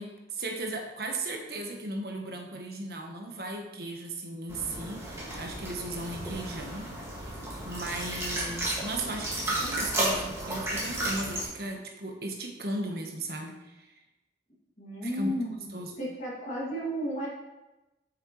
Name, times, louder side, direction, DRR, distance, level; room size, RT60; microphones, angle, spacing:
voice 1, 0.0-6.9 7.2-7.3 7.6-13.9 15.0-15.3 15.7-15.9, right 2 dB, 60° right, 2 dB, 1.3 m, -36 dB
sound 1, 4.5-11.5, right 1 dB, 15° right, 2.0 m, -33 dB
voice 2, 14.8-15.5 16.0-17.3, equal, 40° left, -7 dB, 2.5 m, -33 dB
8.6 x 6.4 x 3.2 m, 1.0 s
head